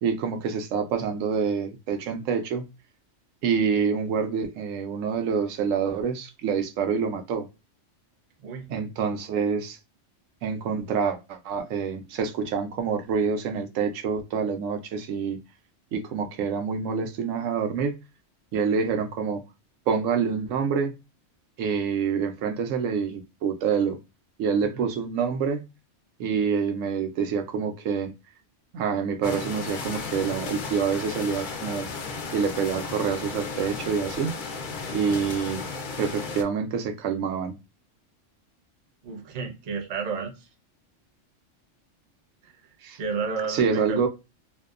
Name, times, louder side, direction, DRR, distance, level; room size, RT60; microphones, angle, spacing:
voice 1, 0.0-2.7 3.4-7.5 8.7-9.8 10.4-15.4 15.9-18.0 18.5-19.4 19.9-21.0 21.6-24.0 24.4-25.6 26.2-28.1 28.7-31.9 32.3-34.3 34.9-35.7 36.0-37.6 42.8-43.0 43.5-44.1, right 6 dB, 90° right, 1.0 m, -27 dB
sound 1, 29.2-36.4, left 4 dB, 55° left, 0.6 m, -34 dB
voice 2, 39.0-40.3 42.4-42.5 43.0-44.0, right 5 dB, 45° right, 0.6 m, -31 dB
2.7 x 2.1 x 2.4 m
omnidirectional pair, 1.3 m